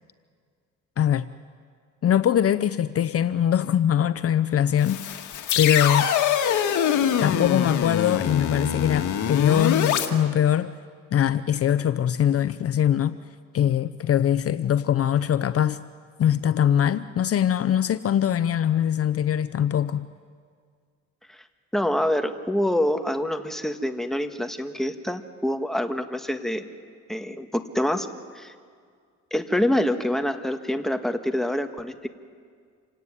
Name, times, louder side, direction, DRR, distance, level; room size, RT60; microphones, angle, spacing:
voice 1, 1.0-1.3 2.0-5.0 5.6-6.1 7.2-10.7 11.1-13.2 13.5-15.8 16.2-20.1, left 9 dB, 50° left, 0.7 m, -22 dB
sound 1, 4.8-10.1, left 9 dB, 80° left, 1.9 m, -24 dB
voice 2, 21.7-26.7 27.1-28.1 28.3-28.5 29.3-32.1, left 1 dB, ahead, 1.7 m, -26 dB
27.5 x 17.5 x 9.8 m
cardioid pair, 90°, 30 cm